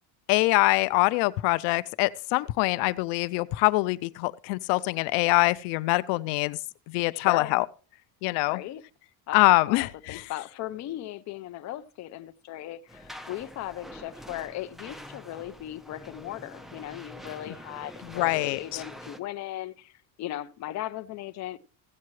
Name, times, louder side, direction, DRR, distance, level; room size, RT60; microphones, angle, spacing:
voice 1, 0.3-6.6 6.9-7.6 8.2-8.6 9.3-10.2 18.1-18.8, left 22 dB, 85° left, 0.5 m, -24 dB
voice 2, 7.1-7.5 8.5-8.8 9.3-9.4 9.7-19.9 20.2-21.6, left 14 dB, 45° left, 0.6 m, -37 dB
sound 1, 12.9-19.2, equal, ahead, 0.4 m, -45 dB
15.0 x 8.3 x 3.1 m
cardioid pair, 140°, 41 cm